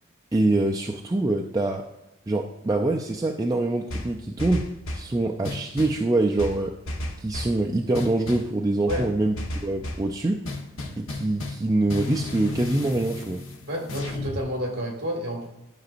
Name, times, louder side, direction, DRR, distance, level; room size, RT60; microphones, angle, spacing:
voice 1, 0.3-1.9 2.3-6.7 7.2-9.4 9.6-10.4 11.0-13.4, right 2 dB, 15° right, 1 dB, 0.3 m, -25 dB
sound 1, 3.9-5.1 5.4-6.0 6.4-7.6 7.9-8.5 8.9-10.1 10.4-11.6 11.9-14.4, left 2 dB, 75° left, 1.1 m, -33 dB
voice 2, 13.7-15.5, equal, 50° right, 1 dB, 2.0 m, -30 dB
12.5 x 5.8 x 2.5 m, 0.88 s
head